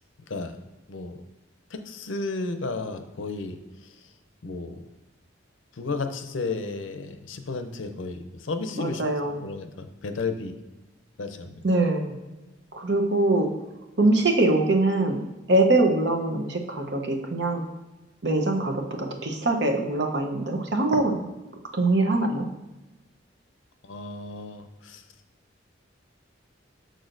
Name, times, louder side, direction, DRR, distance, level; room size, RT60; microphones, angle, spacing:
voice 1, 0.3-0.6 0.9-1.2 1.7-3.6 3.8-3.9 4.4-4.8 5.8-9.0 9.4-10.5 11.2-11.6 23.8-25.0, left 3 dB, 80° left, 8 dB, 0.6 m, -33 dB
voice 2, 8.7-9.4 11.6-12.2 12.7-13.5 14.0-17.6 18.2-21.2 21.7-22.5, right 2 dB, 60° right, 3 dB, 0.8 m, -23 dB
6.5 x 6.2 x 2.6 m, 1.1 s
head